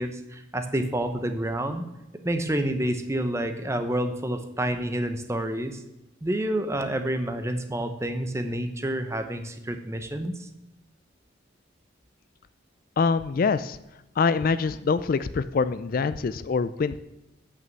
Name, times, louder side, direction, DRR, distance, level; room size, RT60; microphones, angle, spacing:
voice 1, 0.0-1.9 2.2-5.8 6.2-10.5, right 1 dB, 15° right, 7 dB, 0.8 m, -28 dB
voice 2, 13.0-13.8 14.2-17.0, left 5 dB, 45° left, 14 dB, 0.3 m, -24 dB
8.4 x 6.2 x 7.5 m, 0.94 s
head